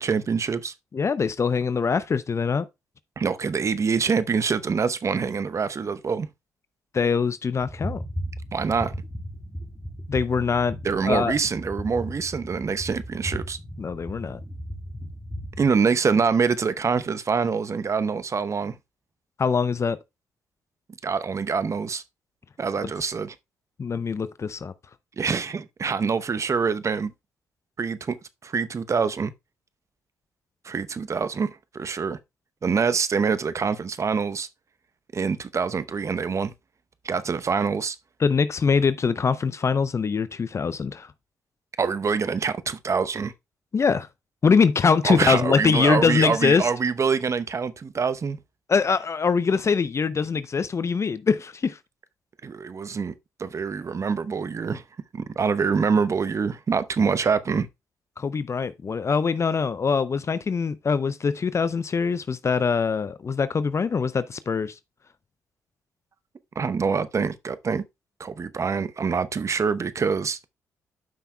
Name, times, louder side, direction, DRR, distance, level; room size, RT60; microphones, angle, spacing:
voice 1, 0.0-0.7 3.2-6.3 8.5-8.9 10.8-13.6 15.6-18.8 21.0-22.0 22.6-23.3 25.2-27.1 27.8-28.2 28.4-29.3 30.6-32.2 32.6-34.5 35.1-36.5 37.0-38.0 41.8-43.3 45.0-48.4 52.4-53.1 53.4-54.8 55.1-57.7 66.6-67.8 68.2-70.4, right 5 dB, 40° right, 0.8 m, -25 dB
voice 2, 0.9-2.7 6.9-8.0 10.1-10.8 11.0-11.3 13.8-14.4 19.4-20.0 23.8-24.7 38.2-41.1 43.7-44.1 44.4-46.7 48.7-51.8 58.2-64.7, left 5 dB, 40° left, 0.6 m, -23 dB
sound 1, 7.6-15.7, equal, 5° left, 2.0 m, -36 dB
12.5 x 5.7 x 2.2 m
hypercardioid pair, 45°, 7 cm